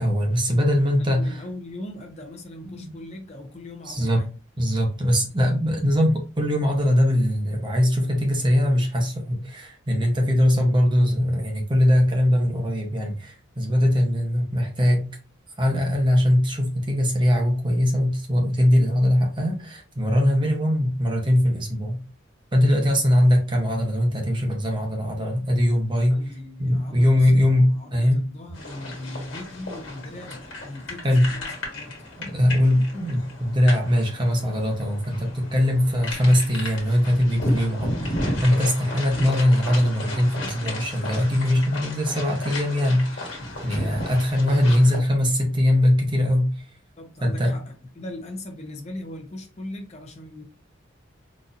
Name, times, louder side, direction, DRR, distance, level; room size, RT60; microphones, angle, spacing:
voice 1, 0.0-1.3 2.6-2.8 3.9-4.2 4.6-15.1 15.6-22.0 22.5-26.2 26.6-28.2 31.0-31.3 32.2-46.5 47.2-47.6, left 1 dB, 25° right, 0.8 m, -21 dB
voice 2, 0.9-4.3 26.0-32.0 47.0-50.4, left 1 dB, 35° left, 0.6 m, -39 dB
sound 1, 28.5-45.0, left 1 dB, 60° left, 1.3 m, -34 dB
4.0 x 2.6 x 2.5 m
head